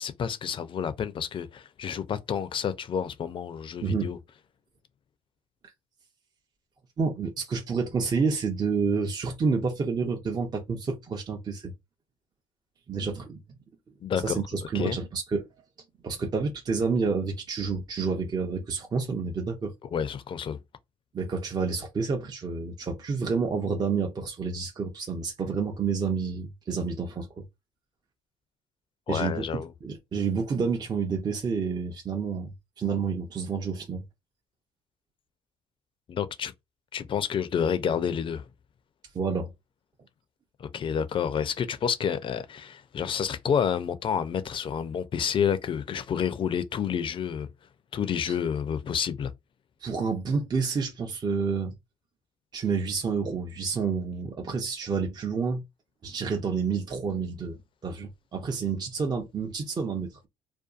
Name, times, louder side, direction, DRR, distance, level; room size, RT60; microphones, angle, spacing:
voice 1, 0.0-4.2 14.0-14.4 14.7-15.0 19.8-20.6 29.1-29.7 36.1-36.5 36.9-38.5 40.6-47.5 47.9-49.3, left 7 dB, 40° left, 0.4 m, -29 dB
voice 2, 7.0-11.7 12.9-13.4 14.2-15.5 16.0-19.7 21.1-27.4 29.1-29.4 29.8-34.0 39.1-39.5 48.3-48.4 49.8-51.7 52.5-55.6 56.0-57.6 57.8-60.3, right 5 dB, 30° right, 0.6 m, -29 dB
2.6 x 2.2 x 2.4 m
supercardioid pair, 75°, 14 cm